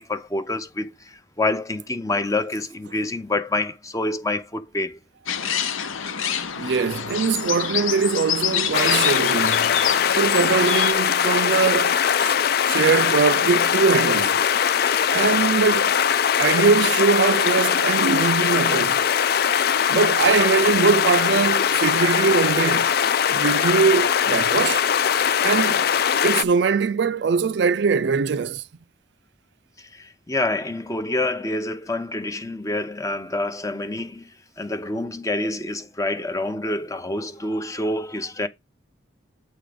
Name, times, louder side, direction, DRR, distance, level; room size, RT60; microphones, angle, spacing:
voice 1, 0.0-5.0 29.8-38.5, left 2 dB, 15° left, 0.7 m, -27 dB
sound 1, 5.3-10.9, left 8 dB, 85° left, 0.8 m, -27 dB
voice 2, 6.6-9.7 10.1-12.4 12.7-14.4 15.1-15.9 16.4-19.0 19.9-22.9 23.3-24.9 25.4-25.9 26.2-28.6, right 5 dB, 55° right, 0.4 m, -22 dB
sound 2, 8.7-26.4, left 8 dB, 50° left, 0.4 m, -21 dB
8.5 x 3.7 x 5.1 m
head